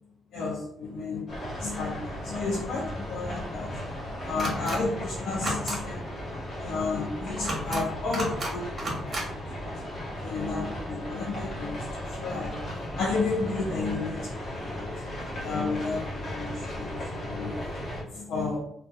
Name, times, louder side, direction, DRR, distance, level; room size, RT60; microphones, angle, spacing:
voice 1, 0.3-1.2 1.6-3.7 4.2-6.0 6.6-9.2 9.6-9.7 10.2-12.6 13.0-14.9 15.4-17.5 18.1-18.6, left 3 dB, 75° left, -5 dB, 0.5 m, -32 dB
sound 1, 1.3-18.0, left 1 dB, 40° left, 0.9 m, -36 dB
sound 2, 4.4-4.8 5.3-5.8 7.4-7.8 8.1-8.5 8.8-9.2, right 1 dB, 35° right, 1.0 m, -31 dB
2.8 x 2.2 x 2.3 m, 0.74 s
cardioid pair, 90°, 0 cm